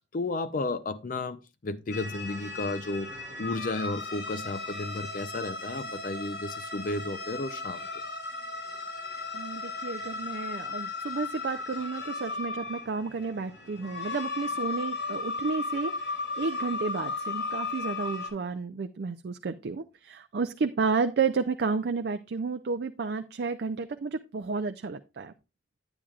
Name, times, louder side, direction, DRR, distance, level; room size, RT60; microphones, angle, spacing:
voice 1, 0.1-7.9, left 2 dB, 45° left, 0.5 m, -33 dB
sound 1, 1.9-18.3, left 3 dB, 80° left, 4.6 m, -36 dB
voice 2, 9.3-15.9 16.4-25.3, right 4 dB, 60° right, 0.4 m, -31 dB
10.0 x 8.8 x 2.4 m
head